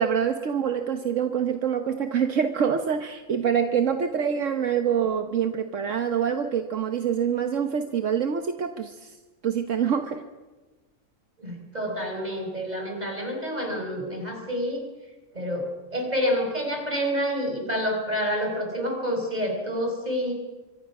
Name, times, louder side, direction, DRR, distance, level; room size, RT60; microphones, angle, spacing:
voice 1, 0.0-9.1 9.4-10.2, right 7 dB, 70° right, 7 dB, 1.4 m, -25 dB
voice 2, 11.4-14.8 15.3-15.7 15.9-20.3, equal, 30° right, 2 dB, 5.3 m, -28 dB
25.0 x 24.5 x 6.1 m, 1.2 s
omnidirectional pair, 1.3 m